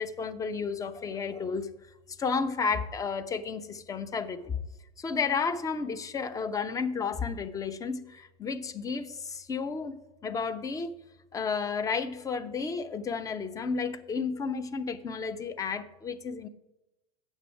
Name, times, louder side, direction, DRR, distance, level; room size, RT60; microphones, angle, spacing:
voice 1, 0.0-1.7 2.2-4.6 5.0-11.0 11.3-16.5, left 5 dB, 20° left, 11 dB, 0.5 m, -32 dB
8.1 x 6.3 x 4.9 m, 0.96 s
figure-of-eight pair, 85°, 19 cm